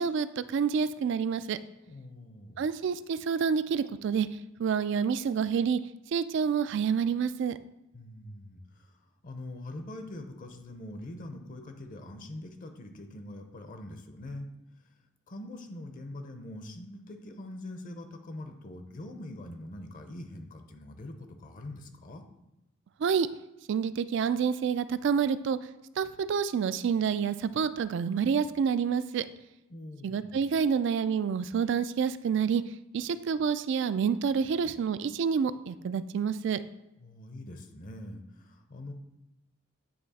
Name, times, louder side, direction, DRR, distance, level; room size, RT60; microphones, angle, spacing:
voice 1, 0.0-1.6 2.6-4.3 4.6-5.8 6.1-7.6 23.0-23.3 23.7-25.6 26.0-29.3 30.0-32.6 32.9-36.6, right 6 dB, 60° right, 14 dB, 0.3 m, -28 dB
voice 2, 1.9-2.7 7.9-9.0 9.2-14.9 15.3-22.2 29.7-30.5 37.0-38.9, left 1 dB, 40° left, 6 dB, 0.6 m, -43 dB
9.5 x 3.2 x 4.1 m, 0.93 s
head